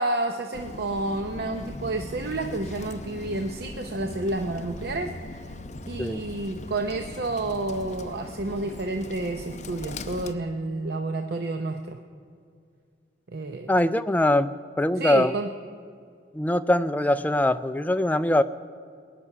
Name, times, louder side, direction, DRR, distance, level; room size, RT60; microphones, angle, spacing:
voice 1, 0.0-5.5 5.9-12.0 13.3-13.7 15.0-15.5, right 2 dB, 60° right, 5 dB, 0.7 m, -30 dB
Bird, 0.5-10.3, left 2 dB, 40° left, 0.6 m, -39 dB
voice 2, 13.7-15.3 16.3-18.4, left 1 dB, 10° left, 12 dB, 0.3 m, -22 dB
20.0 x 6.9 x 9.8 m, 2.2 s
head